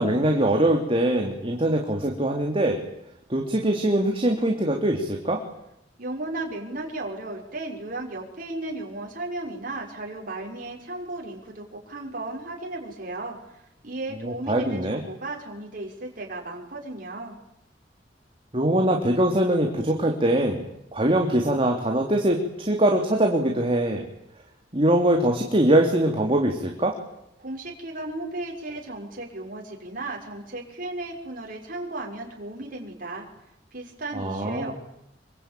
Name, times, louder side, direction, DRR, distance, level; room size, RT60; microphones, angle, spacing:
voice 1, 0.0-2.8 3.3-5.4 14.2-15.0 18.5-20.6 20.9-24.0 24.7-26.9 34.1-34.7, right 1 dB, 30° right, 2 dB, 3.2 m, -22 dB
voice 2, 6.0-17.4 27.4-33.3 33.7-34.7, right 2 dB, 50° right, 0 dB, 6.0 m, -35 dB
26.5 x 24.0 x 9.3 m, 0.81 s
head